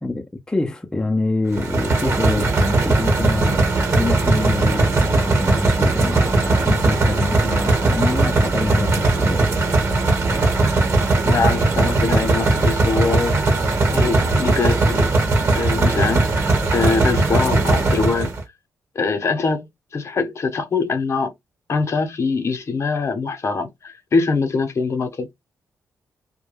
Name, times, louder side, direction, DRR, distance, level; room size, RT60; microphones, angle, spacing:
voice 1, 0.0-9.5, left 2 dB, 10° left, 0.4 m, -25 dB
sound 1, 1.5-18.4, right 3 dB, 40° right, 1.0 m, -19 dB
voice 2, 11.2-13.3 13.9-15.1 15.6-16.4 16.7-18.3 18.9-19.7 19.9-21.3 21.7-25.3, left 4 dB, 50° left, 0.7 m, -23 dB
2.2 x 2.1 x 3.2 m
cardioid pair, 85°, 6 cm